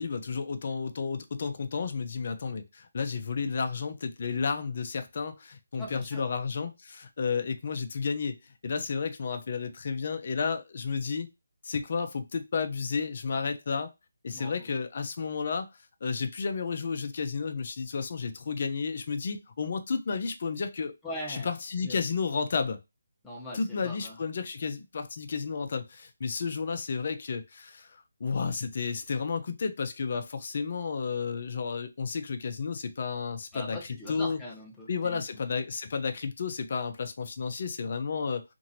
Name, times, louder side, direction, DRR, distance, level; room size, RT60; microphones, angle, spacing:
voice 1, 0.0-8.4 8.6-11.3 11.6-13.9 14.2-15.7 16.0-20.9 21.3-22.8 23.5-27.9 28.2-33.8 34.1-34.4 34.9-38.4, left 5 dB, 50° left, 0.5 m, -32 dB
voice 2, 5.8-6.2 14.3-14.7 21.0-21.5 21.8-22.0 23.2-24.2 33.5-35.2, left 1 dB, 5° left, 0.9 m, -41 dB
2.8 x 2.6 x 2.7 m
figure-of-eight pair, 160°, 0 cm